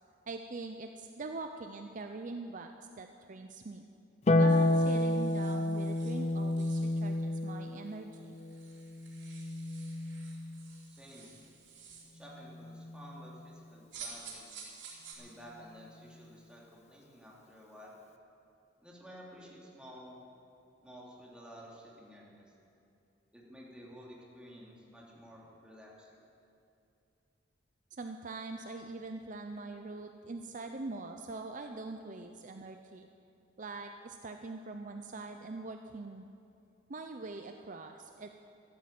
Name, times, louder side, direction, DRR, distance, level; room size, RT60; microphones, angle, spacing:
voice 1, 0.3-3.8 4.4-8.3 27.9-33.1 33.6-36.3 36.9-38.5, right 3 dB, 45° right, 5 dB, 0.6 m, -43 dB
Harp, 4.3-10.8 12.4-13.4, left 1 dB, 40° left, 0.7 m, -31 dB
sound 1, 4.5-7.2 7.9-8.0 8.2-12.2 13.9-15.1, right 5 dB, 80° right, 3.9 m, -51 dB
voice 2, 10.9-11.3 12.1-14.5 15.2-17.9 18.8-20.2 20.8-22.4 23.3-26.1, equal, 5° right, -4 dB, 2.8 m, -52 dB
13.0 x 12.5 x 7.6 m, 2.7 s
head